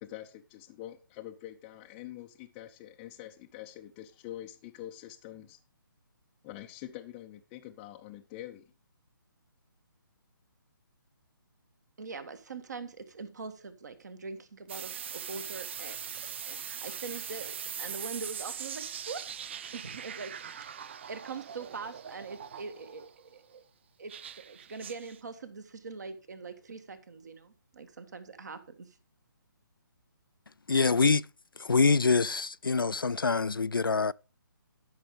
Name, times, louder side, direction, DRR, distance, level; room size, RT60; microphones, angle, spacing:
voice 1, 0.0-5.6 6.4-8.7, left 13 dB, 15° left, 0.6 m, -45 dB
voice 2, 12.0-16.0 16.4-19.3 19.7-20.7 21.1-23.6 24.0-29.0, right 4 dB, 50° right, 1.6 m, -43 dB
sound 1, 14.7-23.1 24.1-25.2, right 8 dB, 30° right, 0.5 m, -41 dB
voice 3, 30.7-31.2 31.6-34.1, left 4 dB, 75° left, 0.4 m, -25 dB
12.5 x 5.7 x 5.0 m
figure-of-eight pair, 140°, 12 cm